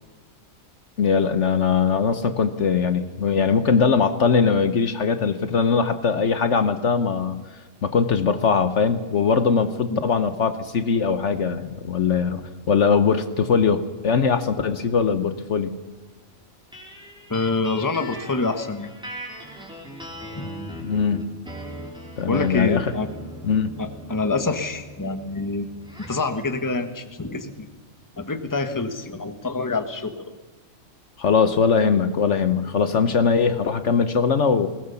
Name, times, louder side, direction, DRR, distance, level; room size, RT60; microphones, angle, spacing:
voice 1, 1.0-7.4 7.8-15.7 20.8-21.3 22.2-22.9 23.4-23.7 31.2-34.7, left 5 dB, 60° left, 10 dB, 1.2 m, -21 dB
sound 1, 16.7-26.3, equal, 5° right, 3.9 m, -39 dB
voice 2, 17.3-18.9 20.3-20.6 22.3-23.1 23.8-25.7 26.1-27.7 28.2-30.2, left 3 dB, 15° left, 8 dB, 1.2 m, -26 dB
21.0 x 18.5 x 7.0 m, 1.3 s
omnidirectional pair, 1.4 m